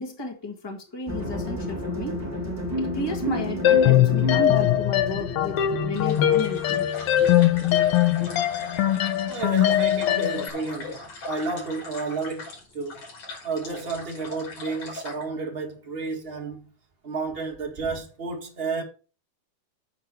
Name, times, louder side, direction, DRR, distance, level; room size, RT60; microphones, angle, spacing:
voice 1, 0.0-2.2 2.8-6.8 9.2-9.3, left 2 dB, 25° left, 0.6 m, -33 dB
sound 1, 1.1-10.0, left 1 dB, 5° right, 1.6 m, -32 dB
sound 2, 3.6-10.5, left 12 dB, 80° left, 1.3 m, -21 dB
sound 3, 6.0-15.2, left 2 dB, 60° left, 5.1 m, -40 dB
voice 2, 9.3-11.0 11.3-13.0 13.4-16.7 17.0-18.8, right 4 dB, 25° right, 1.4 m, -31 dB
8.0 x 4.5 x 6.8 m
omnidirectional pair, 3.5 m